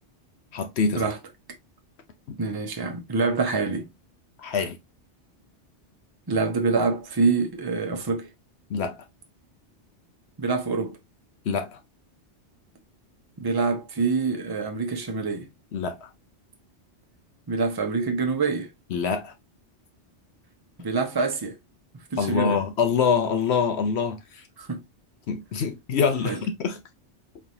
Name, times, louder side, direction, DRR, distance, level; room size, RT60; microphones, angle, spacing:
voice 1, 0.5-1.1 2.3-2.4 4.4-4.8 8.7-9.0 11.5-11.8 15.7-16.1 18.9-19.3 22.2-24.4 25.3-26.8, left 6 dB, 70° left, 0.9 m, -25 dB
voice 2, 2.4-3.9 6.3-8.3 10.4-11.0 13.4-15.5 17.5-18.7 20.8-21.6 22.1-22.6 24.6-24.8 26.2-26.4, right 4 dB, 25° right, 0.7 m, -26 dB
4.3 x 3.2 x 2.6 m
omnidirectional pair, 1.2 m